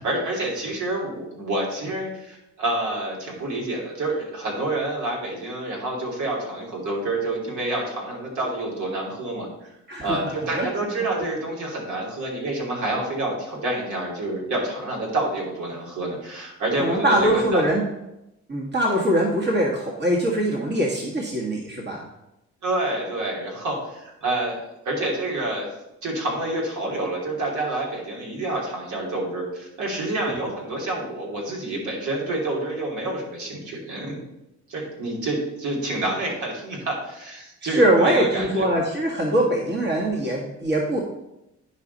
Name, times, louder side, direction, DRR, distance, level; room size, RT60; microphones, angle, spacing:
voice 1, 0.0-9.7 10.0-17.6 22.6-25.7 26.0-34.2 34.7-38.6, right 2 dB, 75° right, -3 dB, 3.0 m, -28 dB
voice 2, 9.9-10.7 16.8-17.8 18.5-22.0 37.6-41.0, right 1 dB, 35° right, -1 dB, 1.6 m, -22 dB
10.5 x 5.0 x 4.1 m, 0.88 s
cardioid pair, 90°, 30 cm